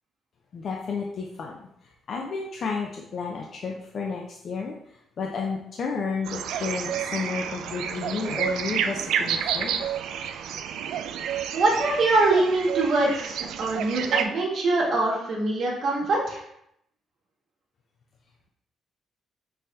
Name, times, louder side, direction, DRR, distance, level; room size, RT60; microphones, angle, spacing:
voice 1, 0.5-9.9, left 5 dB, 55° left, 0 dB, 0.5 m, -32 dB
sound 1, 6.2-14.3, right 8 dB, 85° right, 0.3 m, -30 dB
voice 2, 11.5-16.4, right 2 dB, 60° right, -2 dB, 1.4 m, -23 dB
5.5 x 2.7 x 3.2 m, 0.76 s
cardioid pair, 90°, 0 cm